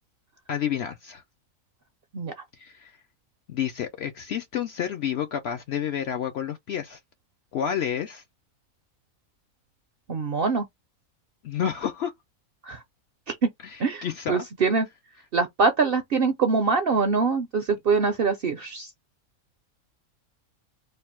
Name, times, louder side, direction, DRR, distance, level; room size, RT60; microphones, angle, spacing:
voice 1, 0.5-1.2 2.6-2.9 3.5-7.0 7.5-8.2 11.4-12.1 13.6-14.5, left 9 dB, 65° left, 0.6 m, -30 dB
voice 2, 10.1-10.6 12.6-12.8 13.3-13.4 13.8-14.9 15.3-18.9, right 4 dB, 60° right, 0.6 m, -24 dB
3.3 x 2.3 x 4.3 m
omnidirectional pair, 1.5 m